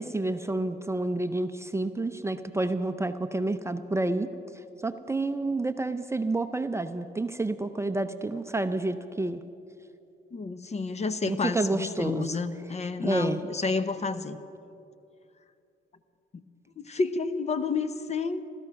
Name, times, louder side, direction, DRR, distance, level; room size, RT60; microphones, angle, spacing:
voice 1, 0.0-4.3 4.8-9.4 11.2-12.3 13.0-13.4, right 2 dB, 15° right, 9 dB, 0.6 m, -29 dB
voice 2, 10.3-14.4 16.8-18.4, left 4 dB, 35° left, 12 dB, 0.8 m, -30 dB
16.5 x 13.5 x 5.8 m, 2.7 s
cardioid pair, 90°, 20 cm